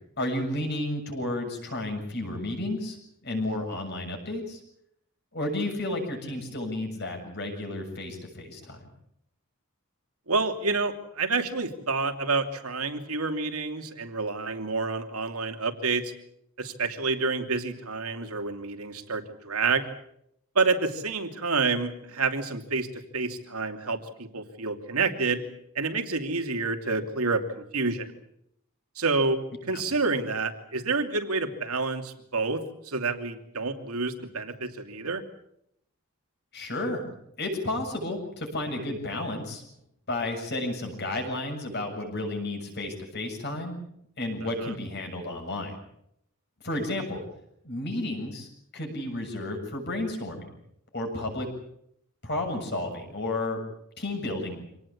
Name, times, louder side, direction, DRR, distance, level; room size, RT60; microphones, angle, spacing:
voice 1, 0.2-3.0 3.2-4.6 5.3-8.8 29.7-29.8 36.5-37.0 37.4-39.6 40.1-43.8 44.2-45.7 46.6-47.2 47.6-48.5 48.7-50.5 50.9-51.5 52.2-53.6 54.0-54.7, left 1 dB, 50° left, 4 dB, 7.0 m, -32 dB
voice 2, 10.3-16.1 16.6-19.8 20.5-25.4 25.7-28.1 29.0-29.4 29.7-35.2 44.6-44.7, right 3 dB, 85° right, 6 dB, 2.8 m, -28 dB
26.5 x 18.5 x 8.5 m, 0.75 s
head